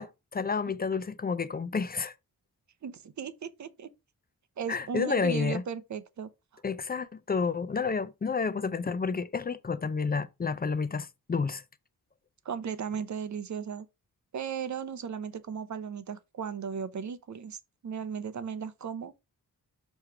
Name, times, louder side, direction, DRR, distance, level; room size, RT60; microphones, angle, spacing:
voice 1, 0.0-2.1 4.7-5.6 6.6-11.6, left 5 dB, 25° left, 0.4 m, -30 dB
voice 2, 2.8-3.9 4.6-6.3 12.4-13.9 14.3-17.6 17.8-19.1, right 7 dB, 50° right, 0.6 m, -36 dB
6.7 x 3.1 x 4.7 m
wide cardioid pair, 170°, 38 cm